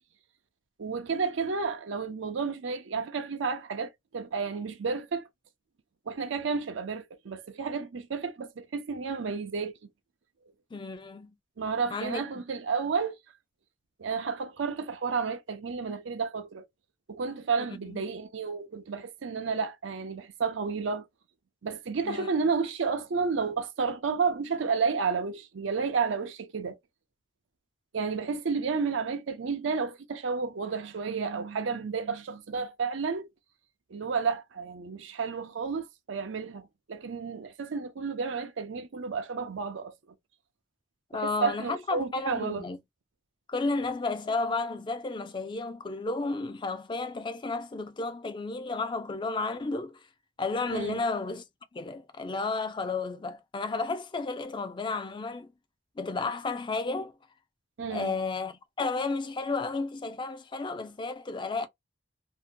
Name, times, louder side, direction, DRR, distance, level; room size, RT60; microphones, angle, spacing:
voice 1, 0.8-5.3 6.1-9.8 11.6-13.2 14.0-16.7 17.1-21.1 21.6-26.8 27.9-33.3 33.9-40.0 41.1-42.6 50.7-51.0 57.8-58.1, right 5 dB, 85° right, 0.5 m, -31 dB
voice 2, 10.7-11.3 11.9-12.2 17.6-18.0 22.1-22.3 41.1-42.8 43.5-50.0 50.4-51.4 51.7-55.5 56.0-57.1 57.9-61.7, left 3 dB, 25° left, 0.4 m, -32 dB
2.7 x 2.1 x 2.5 m
head